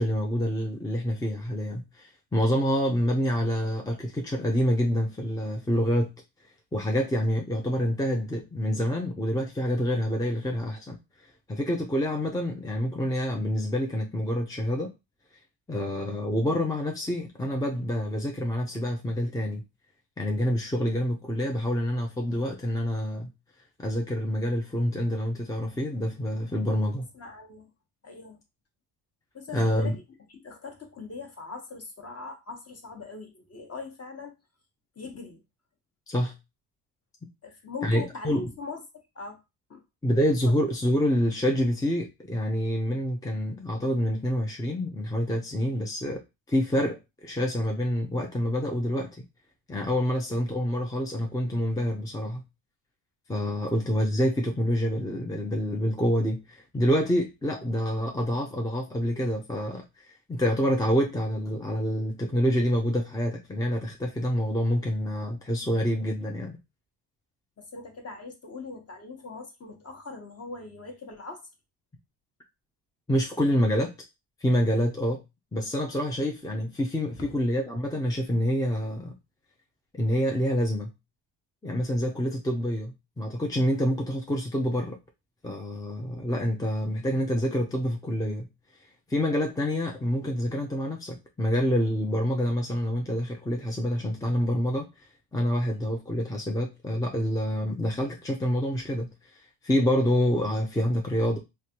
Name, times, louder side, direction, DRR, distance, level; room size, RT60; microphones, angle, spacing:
voice 1, 0.0-6.1 6.7-11.0 11.5-14.9 15.7-19.6 20.2-23.3 23.8-27.1 29.5-30.0 36.1-36.3 37.8-38.4 40.0-46.2 46.5-49.1 49.7-52.4 53.3-66.6 73.1-73.9 74.4-75.2 75.5-79.1 79.9-80.9 81.6-85.0 85.4-88.5 89.1-94.9 95.3-101.4, equal, 10° left, 0.6 m, -27 dB
voice 2, 27.1-27.7 28.0-28.4 29.3-30.0 30.3-34.3 35.0-35.4 37.4-39.4 39.7-39.8 40.5-40.6 53.6-53.7 67.6-71.4 77.2-77.3, left 4 dB, 30° left, 1.1 m, -41 dB
3.2 x 2.5 x 2.8 m
supercardioid pair, 85°, 47 cm